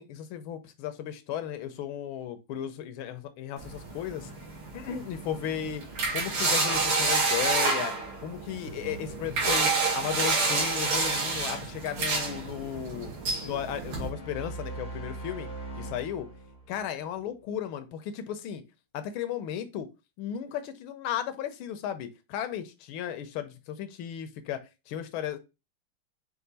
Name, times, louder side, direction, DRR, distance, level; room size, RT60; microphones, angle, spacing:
voice 1, 0.0-4.3 4.7-5.8 6.1-7.9 8.2-13.1 13.4-15.5 15.8-16.3 16.7-18.6 18.9-19.9 20.2-24.6 24.9-25.4, left 9 dB, 80° left, 1.4 m, -35 dB
sound 1, 3.6-14.1, right 3 dB, 75° right, 2.2 m, -29 dB
sound 2, 13.9-17.2, right 2 dB, 50° left, 0.4 m, -40 dB
5.4 x 2.5 x 3.8 m
omnidirectional pair, 2.4 m